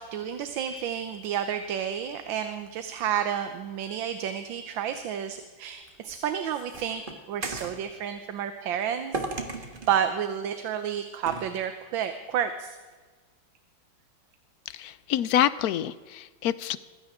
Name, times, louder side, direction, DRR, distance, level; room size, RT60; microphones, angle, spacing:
voice 1, 0.0-9.2 9.5-12.8, right 9 dB, 80° right, 8 dB, 1.6 m, -31 dB
sound 1, 5.9-7.8 9.1-10.0 11.3-11.5, right 3 dB, 30° right, 1.6 m, -35 dB
voice 2, 14.7-16.8, left 11 dB, 70° left, 16 dB, 0.9 m, -26 dB
22.0 x 15.5 x 3.7 m, 1.4 s
omnidirectional pair, 2.1 m